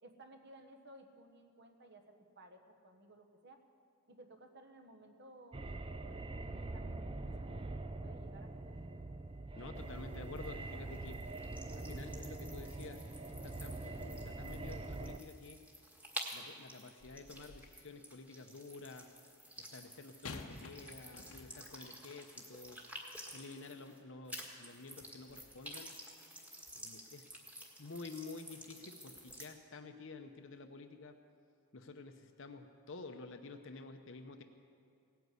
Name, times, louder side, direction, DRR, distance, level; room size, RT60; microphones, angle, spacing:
voice 1, 0.0-3.6 4.1-8.7, right 1 dB, 50° right, 6 dB, 1.3 m, -58 dB
sound 1, 5.5-15.2, right 2 dB, 25° right, 0.5 m, -44 dB
voice 2, 9.6-11.2 11.9-13.0 13.4-15.6 16.3-19.1 19.7-22.8 23.3-25.9 26.7-27.3 27.8-31.1 31.7-34.4, left 3 dB, 60° left, 6 dB, 0.8 m, -50 dB
sound 2, 9.8-24.0 24.3-29.5, equal, 5° right, 1.6 m, -51 dB
sound 3, 17.0-17.8 20.2-21.8 22.6-22.7, left 4 dB, 80° left, 1.1 m, -50 dB
17.5 x 9.2 x 8.3 m, 2.5 s
head